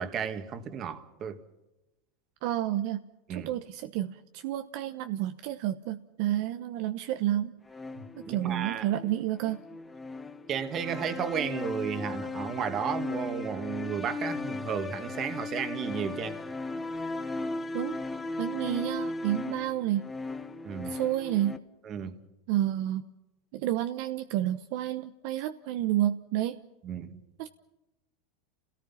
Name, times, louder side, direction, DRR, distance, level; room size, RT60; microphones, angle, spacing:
voice 1, 0.0-1.4 3.3-3.5 8.0-8.9 10.5-16.4 20.6-21.0 21.8-22.2 26.8-27.2, right 7 dB, 30° right, 2.0 m, -33 dB
voice 2, 2.4-3.0 3.3-7.6 8.2-9.6 17.7-18.0 18.4-20.1 20.9-21.6 22.5-23.1 23.5-26.6 27.4-27.5, right 13 dB, 55° right, 1.0 m, -30 dB
sound 1, 7.7-21.6, left 3 dB, 10° left, 1.2 m, -37 dB
29.5 x 18.0 x 5.8 m
supercardioid pair, 145°, 0 cm